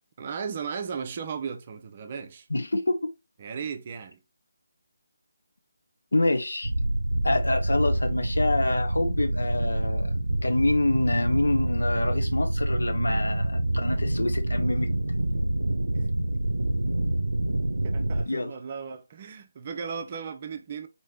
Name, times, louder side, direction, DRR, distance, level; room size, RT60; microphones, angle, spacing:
voice 1, 0.2-2.5 3.4-4.2 16.3-16.4 17.8-20.9, right 6 dB, 30° right, 0.6 m, -36 dB
voice 2, 2.5-3.1 6.1-6.7 7.2-10.1 10.4-14.9 18.3-18.5, left 2 dB, 70° left, 1.0 m, -26 dB
sound 1, 6.6-18.3, right 1 dB, 80° right, 0.6 m, -26 dB
4.3 x 3.2 x 3.6 m
figure-of-eight pair, 155°, 0 cm